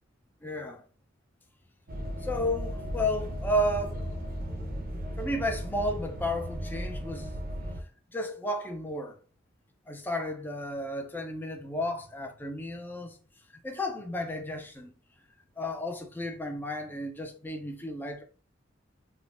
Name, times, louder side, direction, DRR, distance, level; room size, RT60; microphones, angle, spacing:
voice 1, 0.4-0.8 2.2-4.0 5.2-7.4 8.1-9.2 9.9-13.2 13.5-15.0 15.6-18.2, left 1 dB, 10° left, 0.4 m, -33 dB
sound 1, 1.9-7.8, equal, 50° right, 0.5 m, -36 dB
3.3 x 2.1 x 2.5 m
head